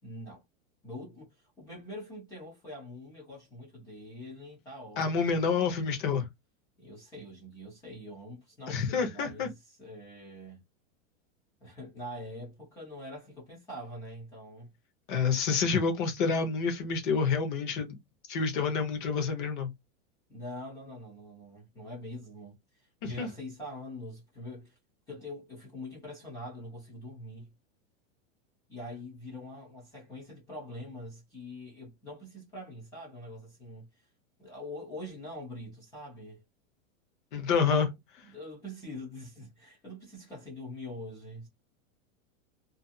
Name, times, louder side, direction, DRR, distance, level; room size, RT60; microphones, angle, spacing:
voice 1, 0.0-0.4 0.8-5.8 6.8-10.6 11.6-14.7 20.3-22.6 23.0-24.7 25.1-27.5 28.7-33.9 34.4-36.4 38.2-41.5, left 1 dB, 10° left, 0.4 m, -44 dB
voice 2, 5.0-6.3 8.7-9.5 15.1-18.0 18.3-19.7 23.0-23.3 37.3-37.9, left 5 dB, 40° left, 0.8 m, -28 dB
2.5 x 2.4 x 2.6 m
supercardioid pair, 175°, 39 cm